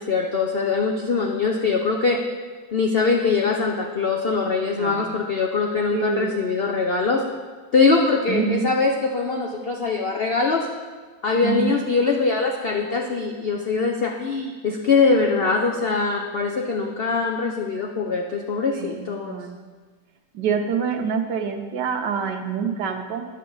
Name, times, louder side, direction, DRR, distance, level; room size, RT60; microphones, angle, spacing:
voice 1, 0.0-2.2 2.7-7.2 7.7-10.7 11.2-19.4, left 4 dB, 70° left, 1 dB, 0.5 m, -22 dB
voice 2, 4.7-5.1 5.9-6.4 8.3-8.7 11.4-11.8 18.7-19.6 20.3-23.2, right 6 dB, 80° right, 5 dB, 1.4 m, -26 dB
10.5 x 7.5 x 3.9 m, 1.4 s
omnidirectional pair, 1.9 m